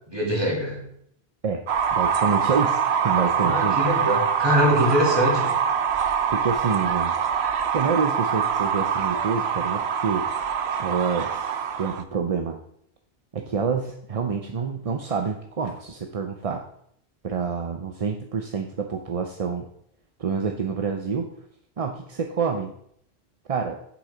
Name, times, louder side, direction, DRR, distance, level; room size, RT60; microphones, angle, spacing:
voice 1, 0.1-0.8 3.4-5.5, equal, 25° right, -2 dB, 2.8 m, -23 dB
sound 1, 1.7-12.0, right 7 dB, 75° right, 1.0 m, -24 dB
voice 2, 1.9-3.8 6.3-7.2 7.7-10.3 10.8-12.6 13.3-16.6 17.2-19.7 20.2-21.3 21.8-22.7 23.5-23.8, right 5 dB, 40° right, 4 dB, 0.6 m, -27 dB
8.1 x 7.1 x 5.0 m, 0.70 s
omnidirectional pair, 1.1 m